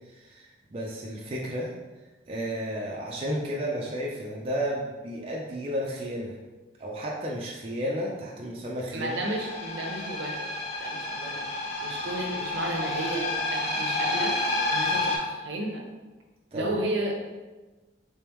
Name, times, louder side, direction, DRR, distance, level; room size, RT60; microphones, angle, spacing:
voice 1, 0.0-1.7 2.3-6.4 6.8-9.2 16.5-16.7, equal, 30° right, -3 dB, 0.4 m, -32 dB
voice 2, 8.9-11.5 11.8-14.4 14.7-15.9 16.5-17.2, right 1 dB, 70° right, 1 dB, 0.6 m, -33 dB
sound 1, 9.1-15.2, left 2 dB, 35° left, 0.6 m, -30 dB
3.5 x 3.4 x 3.0 m, 1.2 s
head